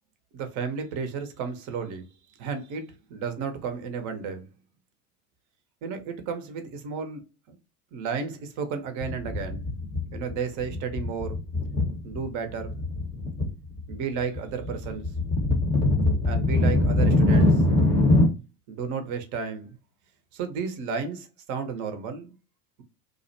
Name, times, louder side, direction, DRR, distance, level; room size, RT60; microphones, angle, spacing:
voice 1, 0.3-2.1 2.4-4.5 5.8-7.2 7.5-7.6 7.9-9.6 10.1-11.4 12.0-12.8 13.9-15.1 16.2-17.6 18.7-19.8 20.3-22.3, right 6 dB, 40° right, 0.7 m, -33 dB
sound 1, 9.0-10.3 10.6-12.2 12.6-13.5 13.8-18.3, left 2 dB, 10° left, 0.7 m, -23 dB
2.5 x 2.1 x 2.6 m
hypercardioid pair, 80°, 47 cm